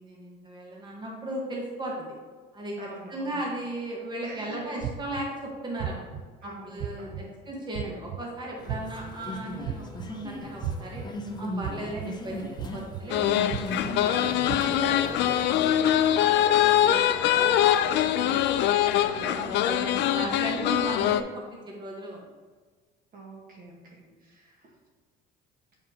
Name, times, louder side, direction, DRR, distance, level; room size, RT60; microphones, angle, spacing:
voice 1, 0.0-2.1 2.5-2.7 3.1-6.1 6.4-11.0 11.4-13.3 13.6-14.3 14.6-16.3 16.6-18.6 19.0-22.2 24.0-24.1, right 1 dB, 20° right, -2 dB, 1.3 m, -36 dB
voice 2, 2.8-3.4 4.2-4.6 6.4-7.3 14.0-14.6 19.2-19.7 20.8-21.3 23.1-24.7, right 2 dB, 45° right, -1 dB, 1.3 m, -45 dB
sound 1, 4.8-5.2 5.8-6.2 6.8-7.2 7.7-8.2 8.7-9.1 9.6-10.1 10.6-11.0 11.6-12.0 12.6-13.0 13.5-13.9 14.5-14.6, right 10 dB, 70° right, 0.5 m, -33 dB
sound 2, 8.6-15.5, left 1 dB, 20° left, 0.8 m, -38 dB
sound 3, 13.1-21.2, left 11 dB, 60° left, 0.4 m, -23 dB
7.3 x 5.1 x 2.8 m, 1.5 s
cardioid pair, 115°, 20 cm